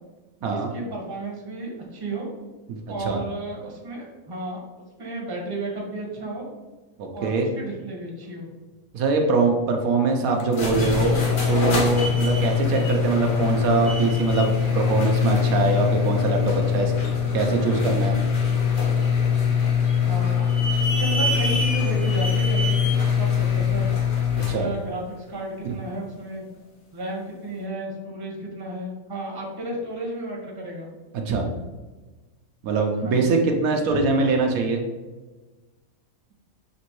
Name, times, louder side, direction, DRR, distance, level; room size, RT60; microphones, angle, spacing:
voice 1, 0.4-2.3 2.9-4.6 5.0-6.5 7.1-8.5 20.0-20.4 20.8-23.9 24.4-26.4 26.9-30.9 33.0-33.4, right 2 dB, 20° right, -2 dB, 0.8 m, -33 dB
voice 2, 2.7-3.2 7.0-7.5 8.9-16.9 17.3-18.1 24.5-24.7 25.6-25.7 31.3-31.5 32.6-34.8, right 3 dB, 75° right, 2 dB, 1.1 m, -23 dB
sound 1, 10.4-24.6, left 6 dB, 45° left, 0.8 m, -22 dB
6.0 x 2.9 x 3.0 m, 1.2 s
omnidirectional pair, 1.5 m